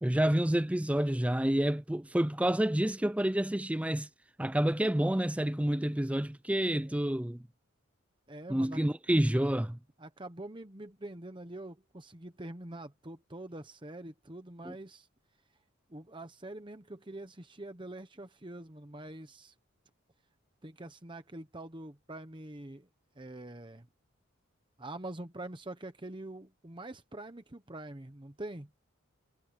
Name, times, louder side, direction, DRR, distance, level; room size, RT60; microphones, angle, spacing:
voice 1, 0.0-4.1 4.4-7.4 8.5-9.8 14.6-14.7, right 1 dB, 5° right, 0.4 m, -28 dB
voice 2, 8.3-8.8 10.0-15.1 15.9-19.5 20.6-22.9 23.2-23.9 24.8-28.7, right 1 dB, 20° right, 1.0 m, -45 dB
head